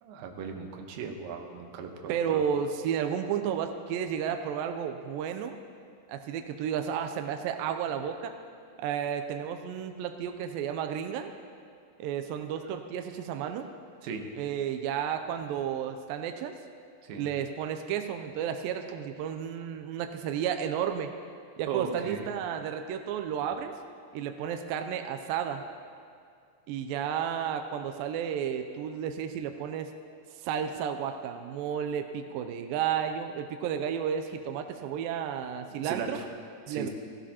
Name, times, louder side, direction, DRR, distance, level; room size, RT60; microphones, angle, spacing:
voice 1, 0.0-2.4 14.0-14.2 17.0-17.3 21.7-22.3 35.7-36.2 36.7-36.9, right 5 dB, 70° right, 3 dB, 2.5 m, -37 dB
voice 2, 2.1-5.5 6.1-8.3 8.8-11.3 12.0-13.7 14.4-16.6 17.2-21.1 21.6-23.7 24.1-25.6 26.7-29.9 30.4-36.2 36.7-36.9, right 8 dB, 85° right, 6 dB, 2.0 m, -32 dB
17.0 x 16.5 x 2.9 m, 2.2 s
omnidirectional pair, 4.7 m